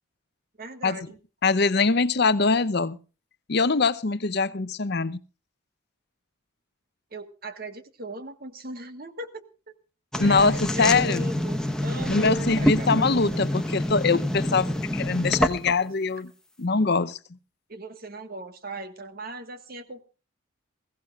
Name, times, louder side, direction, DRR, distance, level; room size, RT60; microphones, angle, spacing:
voice 1, 0.6-1.2 7.1-9.4 10.2-12.9 13.3-13.5 17.7-20.0, right 1 dB, 45° right, 1.5 m, -38 dB
voice 2, 1.4-3.0 3.5-5.2 10.2-11.3 12.1-16.3 16.6-17.2, left 4 dB, 50° left, 0.7 m, -23 dB
sound 1, 10.1-15.9, left 1 dB, 5° left, 1.0 m, -26 dB
21.0 x 16.0 x 2.4 m
head